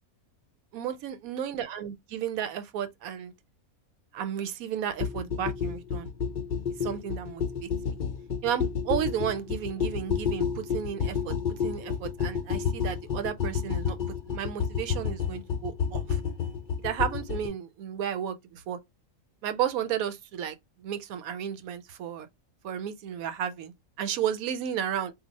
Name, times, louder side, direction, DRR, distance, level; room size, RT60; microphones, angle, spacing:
voice 1, 0.7-3.3 4.1-6.1 6.8-8.0 8.4-16.2 16.8-18.8 19.4-22.3 22.6-25.1, right 9 dB, 85° right, 1.1 m, -33 dB
sound 1, 5.0-17.5, left 7 dB, 50° left, 0.6 m, -30 dB
2.8 x 2.4 x 3.9 m
omnidirectional pair, 1.4 m